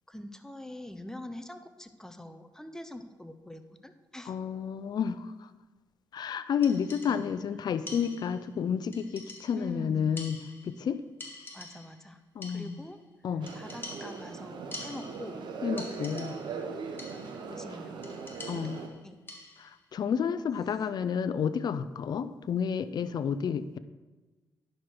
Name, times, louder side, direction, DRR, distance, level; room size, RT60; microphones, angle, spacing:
voice 1, 0.1-4.4 7.1-7.4 9.5-10.1 11.5-12.2 12.5-13.0 13.5-15.5 17.5-18.2 18.5-19.2, left 1 dB, 5° left, 9 dB, 0.8 m, -44 dB
voice 2, 4.3-5.3 6.1-10.4 10.6-11.0 12.4-12.8 13.2-13.5 15.6-16.3 18.5-18.8 19.6-23.8, left 7 dB, 65° left, 13 dB, 0.5 m, -30 dB
sound 1, 6.6-7.4 7.9-8.5 8.9-9.8 10.2-10.9 11.2-12.1 12.4-13.0 13.5-15.4 15.8-16.6 17.0-17.5 18.0-19.8, left 2 dB, 30° left, 1.8 m, -46 dB
sound 2, 13.4-18.9, right 5 dB, 85° right, 0.9 m, -40 dB
10.0 x 6.5 x 4.5 m, 1.2 s
cardioid pair, 85°, 8 cm